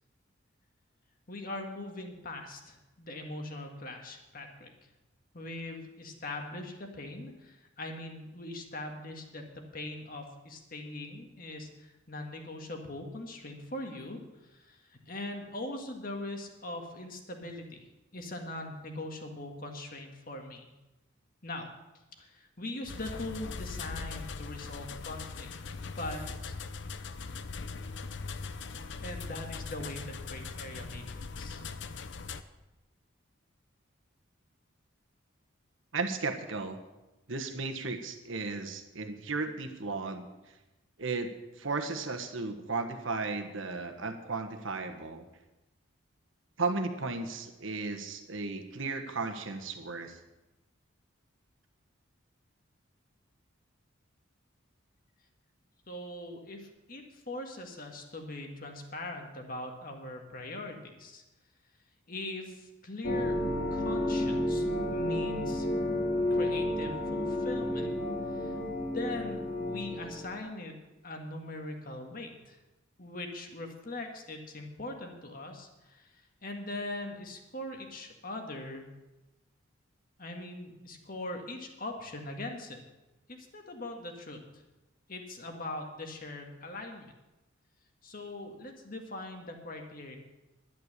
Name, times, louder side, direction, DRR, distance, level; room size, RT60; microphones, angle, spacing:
voice 1, 1.3-4.7 5.3-14.2 14.5-17.8 18.1-20.7 21.4-21.7 22.2-25.7 26.0-26.6 29.0-31.6 55.9-61.2 62.1-63.4 63.7-65.7 66.3-67.9 68.3-68.5 68.9-70.7 71.0-72.6 73.0-78.9 80.2-82.8 83.3-84.6 85.1-87.1 88.0-90.2, left 2 dB, 45° left, 3 dB, 1.8 m, -41 dB
sound 1, 22.9-32.4, left 4 dB, 60° left, 0.7 m, -40 dB
voice 2, 35.9-36.8 37.3-40.3 41.0-41.3 41.6-45.3 46.6-50.2, right 3 dB, 75° right, 6 dB, 1.4 m, -35 dB
sound 2, 63.0-70.4, left 1 dB, 75° left, 2.5 m, -31 dB
11.0 x 10.5 x 6.7 m, 1.0 s
head